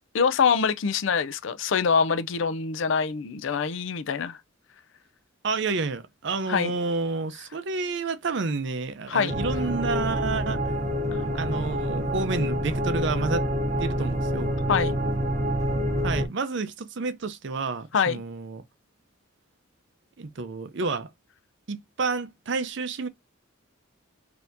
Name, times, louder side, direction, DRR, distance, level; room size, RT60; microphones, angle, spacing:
voice 1, 0.1-4.4 6.5-6.7 9.1-9.4 14.7-15.0 17.9-18.2, left 6 dB, 65° left, 0.4 m, -24 dB
voice 2, 5.4-10.6 11.4-13.4 13.8-14.5 16.0-18.6 20.2-21.1 21.7-23.1, right 4 dB, 60° right, 0.5 m, -30 dB
sound 1, 9.3-16.3, equal, 35° right, 0.9 m, -27 dB
4.2 x 2.8 x 2.6 m
head